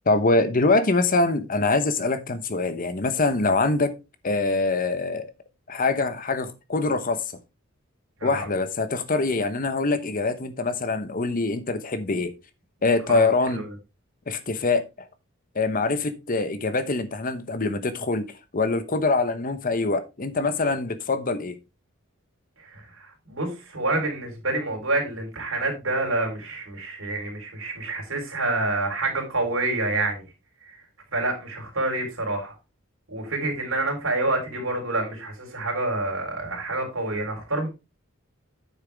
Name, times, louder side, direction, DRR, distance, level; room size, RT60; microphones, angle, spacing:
voice 1, 0.1-3.9 4.2-5.3 5.7-7.2 8.2-12.3 12.8-13.6 14.3-14.8 15.5-18.3 18.5-21.6, left 3 dB, 45° left, 0.9 m, -24 dB
voice 2, 13.1-13.7 22.6-30.2 30.6-30.8 31.1-32.5 33.1-37.7, right 2 dB, 80° right, 4.0 m, -28 dB
8.8 x 7.0 x 3.5 m
head